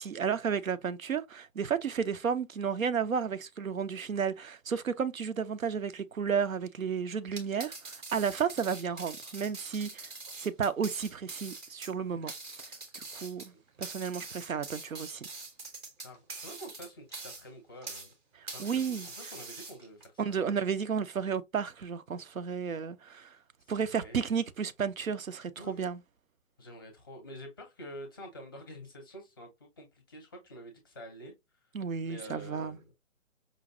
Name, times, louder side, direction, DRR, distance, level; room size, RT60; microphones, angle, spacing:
voice 1, 0.0-10.1 10.4-12.3 12.6-13.5 13.8-15.3 18.4-19.1 20.2-23.4 23.7-26.0 31.7-32.8, right 6 dB, 90° right, 0.5 m, -32 dB
sound 1, 7.3-18.1 18.5-20.1, right 3 dB, 20° right, 0.6 m, -44 dB
voice 2, 16.0-18.1 18.5-20.2 24.0-24.4 25.6-25.8 26.6-31.3 31.6-31.7 32.0-32.9, equal, 20° left, 0.5 m, -47 dB
5.0 x 2.2 x 2.5 m
figure-of-eight pair, 135°, 40 cm